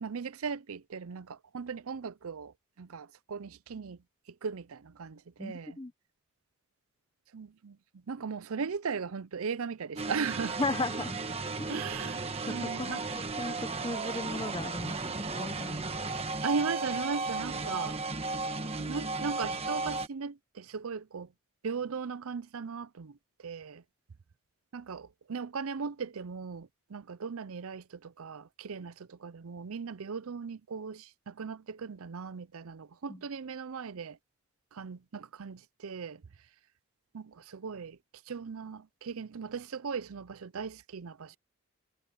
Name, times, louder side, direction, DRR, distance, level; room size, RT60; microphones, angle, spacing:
voice 1, 0.0-4.0 4.4-5.8 7.3-10.6 11.7-13.1 16.4-18.0 18.3-18.4 18.8-21.3 21.6-23.2 23.4-23.8 24.7-34.2 34.7-36.2 37.1-38.0 38.3-41.4, right 5 dB, 75° right, 0.5 m, -38 dB
voice 2, 5.4-5.9 10.6-11.2 12.5-15.8 33.1-33.2, left 2 dB, 20° left, 0.9 m, -36 dB
sound 1, 10.0-20.1, right 3 dB, 25° right, 1.2 m, -35 dB
head